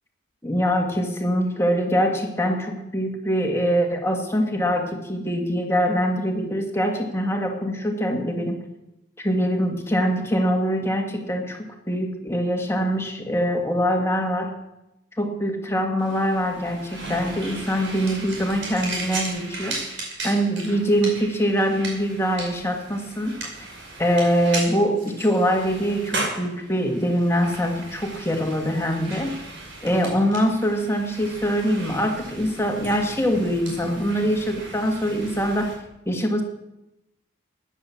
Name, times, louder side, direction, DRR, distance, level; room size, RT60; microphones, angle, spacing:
voice 1, 0.4-8.6 9.2-14.5 15.1-19.8 20.2-23.4 24.0-29.3 29.8-35.7 36.1-36.4, equal, 15° left, 2 dB, 1.9 m, -23 dB
sound 1, 16.0-35.7, right 2 dB, 65° right, 5.3 m, -36 dB
15.0 x 10.0 x 7.1 m, 0.91 s
head